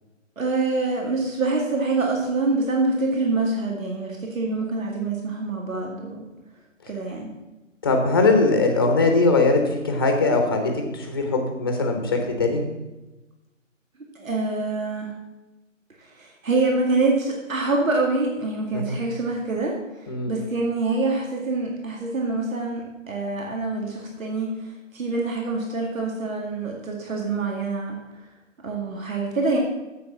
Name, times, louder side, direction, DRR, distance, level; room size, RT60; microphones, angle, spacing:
voice 1, 0.4-6.2 6.9-7.3 14.2-15.1 16.2-19.7 20.3-24.5 24.9-28.0 28.6-29.6, right 3 dB, 85° right, 0 dB, 2.2 m, -25 dB
voice 2, 7.8-12.6 18.7-19.0 20.1-20.3, left 3 dB, 20° left, 4 dB, 0.9 m, -21 dB
7.6 x 6.9 x 7.5 m, 1.1 s
hypercardioid pair, 170°, 39 cm